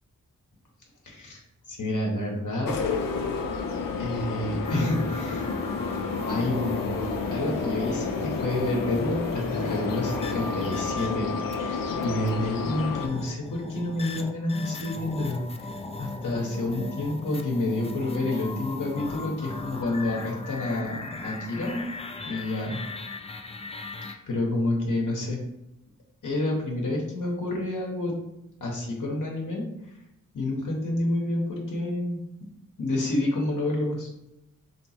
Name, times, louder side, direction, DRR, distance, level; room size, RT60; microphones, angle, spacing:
voice 1, 1.0-1.4 1.7-2.8 4.0-5.5 6.3-15.7 16.0-21.8 22.2-22.8 24.3-25.4 26.2-28.1 28.6-29.7 30.3-32.5 32.8-34.1, left 1 dB, 65° left, -2 dB, 1.0 m, -29 dB
sound 1, 2.7-13.1, left 4 dB, 90° left, 0.5 m, -30 dB
sound 2, 4.6-11.6 12.0-12.3 12.9-24.1, left 3 dB, 20° left, 0.3 m, -38 dB
3.2 x 2.9 x 4.2 m, 0.86 s
wide cardioid pair, 95°, 33 cm